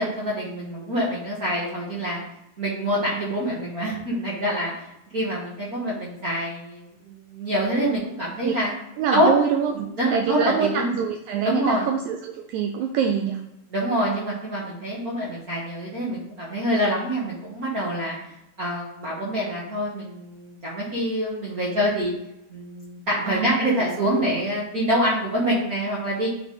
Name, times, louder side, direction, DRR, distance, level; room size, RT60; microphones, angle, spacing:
voice 1, 0.0-2.2 2.6-4.9 5.1-8.7 9.1-9.3 9.7-10.9 11.4-11.9 13.7-18.2 18.6-22.1 22.5-26.3, equal, 45° right, -6 dB, 1.2 m, -26 dB
voice 2, 9.0-13.4 23.3-23.8, right 7 dB, 80° right, 4 dB, 1.9 m, -25 dB
10.0 x 3.3 x 4.2 m, 0.88 s
omnidirectional pair, 3.5 m